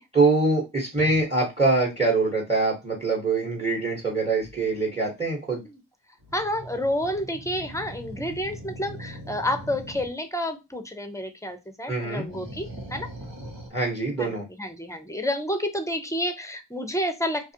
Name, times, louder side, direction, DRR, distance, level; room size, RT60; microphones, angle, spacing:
voice 1, 0.1-5.6 11.9-12.3 13.7-14.4, right 3 dB, 15° right, -1 dB, 1.1 m, -24 dB
sound 1, 0.9-1.2 4.4-4.7 6.2-10.1 12.2-13.7, right 1 dB, 75° right, 1.3 m, -41 dB
voice 2, 6.3-13.1 14.2-17.5, left 1 dB, 5° left, 7 dB, 0.6 m, -30 dB
2.6 x 2.4 x 2.7 m, 0.23 s
cardioid pair, 50°, 43 cm